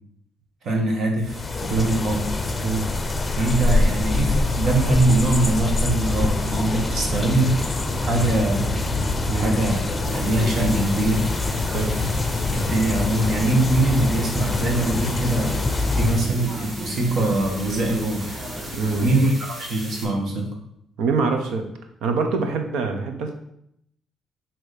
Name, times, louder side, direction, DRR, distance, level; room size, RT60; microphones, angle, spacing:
voice 1, 0.6-2.2 3.4-7.5 8.1-9.0 9.3-9.8 10.1-11.3 12.5-15.6 16.0-18.4 19.0-20.5, right 2 dB, 60° right, 1 dB, 1.5 m, -23 dB
sound 1, 1.2-16.3, left 2 dB, 25° left, 0.6 m, -25 dB
sound 2, 6.0-19.1, equal, 5° left, 1.7 m, -34 dB
sound 3, 10.0-20.0, right 1 dB, 30° right, 2.0 m, -39 dB
voice 2, 18.7-19.3 21.0-21.6 22.0-23.3, right 4 dB, 85° right, 5 dB, 0.8 m, -24 dB
6.3 x 3.0 x 5.0 m, 0.74 s
cardioid pair, 90°, 0 cm